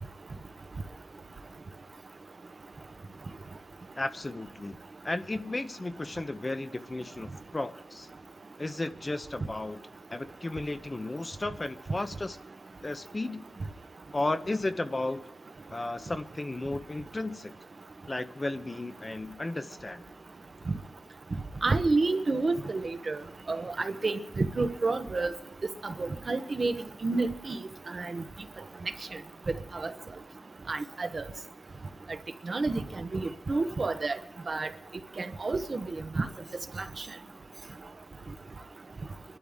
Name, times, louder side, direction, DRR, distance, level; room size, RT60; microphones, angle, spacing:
voice 1, 4.0-4.8 5.0-8.1 8.6-9.8 10.1-12.4 12.8-13.4 14.1-15.2 15.7-17.5 18.1-20.0, left 2 dB, 30° left, 0.8 m, -34 dB
voice 2, 21.6-23.2 23.5-25.3 25.8-26.7 27.0-27.6 27.9-28.2 29.7-29.9 30.7-31.2 32.5-34.2 34.5-34.7 35.2-35.8 36.2-36.3, right 3 dB, 50° right, 1.0 m, -29 dB
24.5 x 12.5 x 3.6 m
wide cardioid pair, 105°, 0 cm